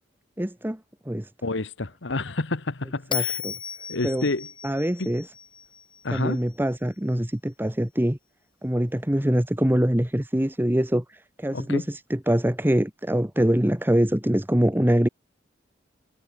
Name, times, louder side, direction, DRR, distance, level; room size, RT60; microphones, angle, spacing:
voice 1, 0.4-0.8 1.0-1.3 3.1-3.6 4.0-4.3 4.6-5.3 6.1-8.2 8.6-15.1, equal, 10° right, 1.2 m, -24 dB
voice 2, 1.4-3.4 3.9-4.5 5.0-5.1 6.0-6.4 11.5-11.8, left 2 dB, 70° left, 1.3 m, -29 dB
Bell, 3.1-6.4, left 8 dB, 25° left, 1.7 m, -34 dB
head